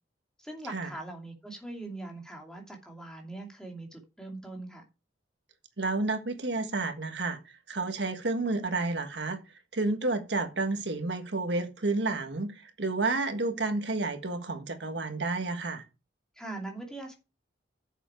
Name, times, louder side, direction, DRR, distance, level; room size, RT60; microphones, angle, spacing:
voice 1, 0.4-4.8 16.4-17.1, right 2 dB, 5° left, 2.7 m, -41 dB
voice 2, 5.8-7.4 7.7-9.4 9.7-15.8, right 3 dB, 75° right, 1.5 m, -30 dB
9.8 x 7.2 x 4.6 m
head